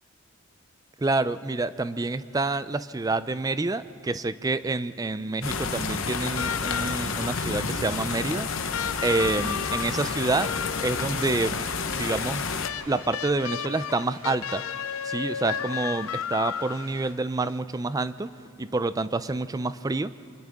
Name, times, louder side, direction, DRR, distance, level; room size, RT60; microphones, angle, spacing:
voice 1, 1.0-8.5 9.0-10.5 10.8-11.6 12.0-12.5 12.9-14.6 15.0-18.3 18.6-20.1, right 3 dB, 15° right, 14 dB, 0.4 m, -28 dB
sound 1, 5.4-12.7, left 5 dB, 65° left, 1.0 m, -30 dB
sound 2, 5.7-17.1, right 3 dB, 75° right, 2.3 m, -50 dB
sound 3, 6.4-7.3 8.7-11.3 12.6-17.1 18.4-18.5, left 8 dB, 85° left, 0.5 m, -33 dB
29.0 x 25.5 x 3.6 m, 2.8 s
head